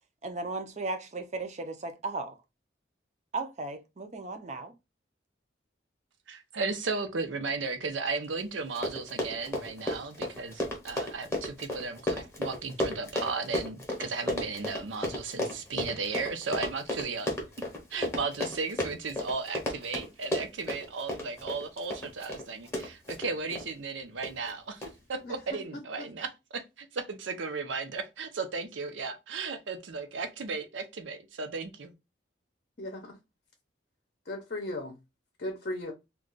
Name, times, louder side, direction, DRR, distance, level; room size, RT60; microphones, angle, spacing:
voice 1, 0.2-2.4 3.3-4.7, right 3 dB, 35° right, 0.5 m, -36 dB
voice 2, 6.3-17.3 17.9-24.8 25.1-31.9, right 4 dB, 80° right, 0.6 m, -35 dB
Run, 8.4-8.5 8.7-23.7 24.2-24.5 24.8-24.9, left 1 dB, 15° left, 0.8 m, -33 dB
voice 3, 25.2-26.1 32.8-33.2 34.3-35.0 35.4-35.9, left 1 dB, 50° left, 0.6 m, -37 dB
2.3 x 2.3 x 3.8 m
head